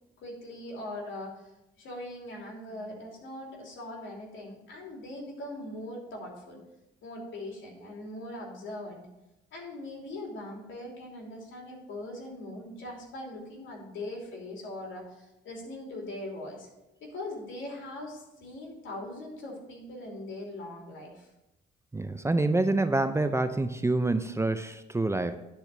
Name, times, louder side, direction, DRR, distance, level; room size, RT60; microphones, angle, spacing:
voice 1, 0.2-1.5 1.8-6.6 7.0-9.0 9.5-16.7 17.0-21.3, left 1 dB, 70° left, -1 dB, 3.0 m, -41 dB
voice 2, 21.9-25.4, right 2 dB, 15° right, 9 dB, 0.5 m, -27 dB
10.0 x 4.5 x 6.6 m, 0.93 s
cardioid pair, 90°, 20 cm